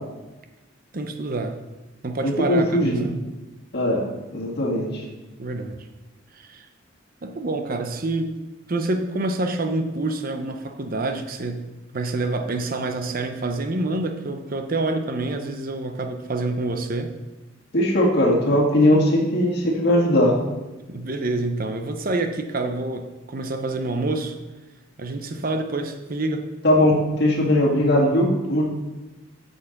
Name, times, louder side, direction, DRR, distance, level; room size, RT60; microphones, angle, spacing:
voice 1, 0.9-1.6 2.0-3.2 5.4-5.8 6.3-6.7 7.2-8.3 8.7-17.1 18.9-19.0 20.9-24.3 25.0-26.5, right 2 dB, 45° right, 6 dB, 0.7 m, -27 dB
voice 2, 2.2-3.0 3.7-4.1 4.3-5.0 17.7-20.4 26.6-28.6, left 1 dB, 55° left, -2 dB, 2.0 m, -19 dB
8.1 x 5.6 x 5.9 m, 1.1 s
head